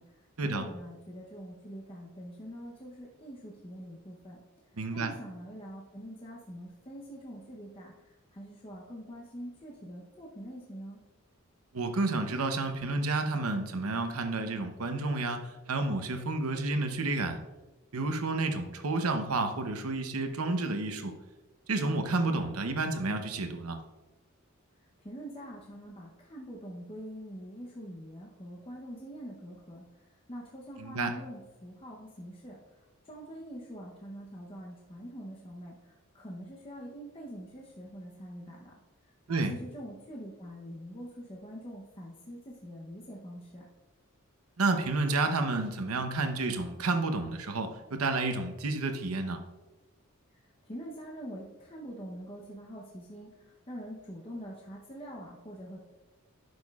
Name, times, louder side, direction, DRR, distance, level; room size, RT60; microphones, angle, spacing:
voice 1, 0.0-4.4 4.9-11.0 25.0-38.7 39.3-43.6 50.6-55.8, equal, 25° left, -3 dB, 0.8 m, -44 dB
voice 2, 4.8-5.1 11.7-17.4 17.9-21.1 21.7-23.8 30.8-31.1 39.3-39.5 44.6-49.4, right 3 dB, 85° right, 6 dB, 0.8 m, -30 dB
10.5 x 6.7 x 2.4 m, 1.2 s
head